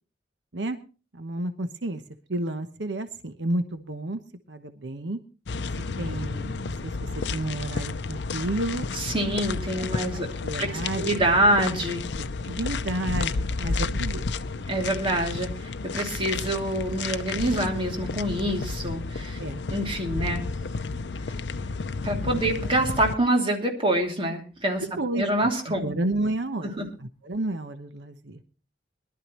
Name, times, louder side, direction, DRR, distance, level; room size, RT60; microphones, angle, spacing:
voice 1, 1.1-2.0 2.3-4.2 4.5-5.2 6.0-8.9 9.8-9.9 10.1-11.1 12.2-14.3 19.4-19.6 25.0-28.4, right 1 dB, 90° right, 9 dB, 1.0 m, -31 dB
sound 1, 5.5-23.1, left 4 dB, 75° left, 0.6 m, -31 dB
voice 2, 8.9-10.3 10.6-10.7 11.0-12.1 14.7-19.4 19.7-20.5 22.0-24.8 25.1-25.9 26.6-26.9, right 1 dB, 30° right, 2 dB, 2.7 m, -26 dB
22.0 x 12.0 x 3.1 m, 0.35 s
head